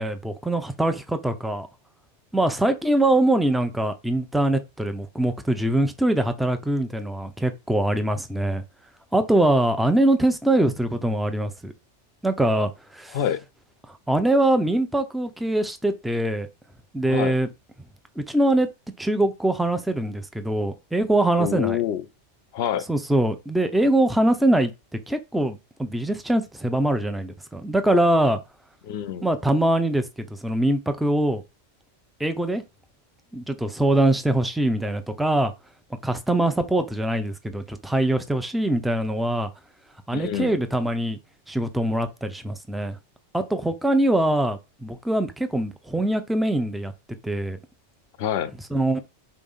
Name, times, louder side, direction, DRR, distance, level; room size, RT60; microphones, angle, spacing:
voice 1, 0.0-1.7 2.3-8.6 9.1-11.7 12.2-13.2 14.1-16.5 16.9-17.5 18.2-18.7 19.0-21.8 22.9-24.7 25.1-28.4 29.2-31.4 32.2-32.6 33.3-35.5 36.0-39.5 40.1-41.2 41.5-43.0 43.3-46.9 47.2-47.6 48.7-49.0, right 1 dB, ahead, 0.4 m, -23 dB
voice 2, 13.1-13.4 17.1-17.4 21.4-22.0 22.5-22.9 28.8-29.3 40.1-40.5 48.2-48.6, left 10 dB, 65° left, 0.8 m, -26 dB
8.6 x 2.9 x 5.6 m
omnidirectional pair, 1.2 m